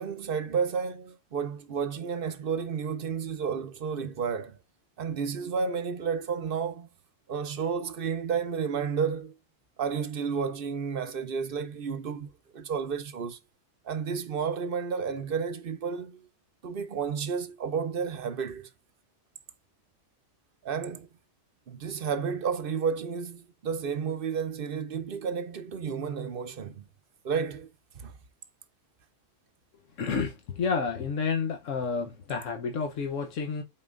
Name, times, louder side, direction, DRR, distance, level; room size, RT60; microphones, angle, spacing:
voice 1, 0.0-4.6 5.0-6.9 7.3-9.4 9.8-13.4 13.8-16.3 16.6-18.7 20.6-21.1 21.7-26.8 27.2-27.7 28.0-28.1, right 6 dB, 55° right, 0.8 m, -31 dB
voice 2, 30.0-33.6, left 5 dB, 90° left, 1.3 m, -30 dB
10.5 x 4.4 x 2.5 m
omnidirectional pair, 1.3 m